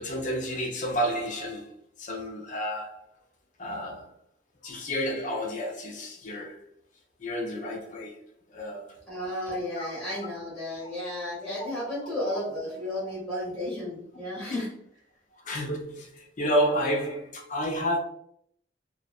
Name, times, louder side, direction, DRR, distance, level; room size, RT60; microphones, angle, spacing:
voice 1, 0.0-3.0 3.6-4.1 4.6-6.6 7.2-8.2 8.5-9.0 9.8-9.9 15.3-18.0, equal, 40° left, 0.5 m, -30 dB
voice 2, 9.1-14.7, left 1 dB, ahead, 0.9 m, -33 dB
2.5 x 2.0 x 2.4 m
head